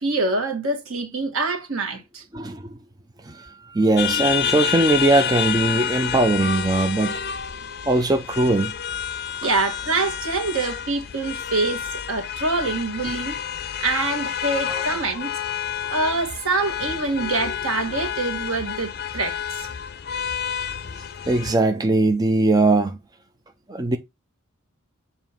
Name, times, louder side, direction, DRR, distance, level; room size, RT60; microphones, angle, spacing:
voice 1, 0.0-2.2 9.4-13.3 13.8-15.3 15.9-19.7, right 3 dB, 80° right, 1.5 m, -25 dB
voice 2, 2.3-2.8 3.2-7.2 7.9-8.7 14.7-14.8 21.3-23.0 23.7-24.0, right 2 dB, 20° right, 0.5 m, -20 dB
sound 1, 4.0-21.6, left 9 dB, 50° left, 0.5 m, -29 dB
7.1 x 2.8 x 5.6 m
head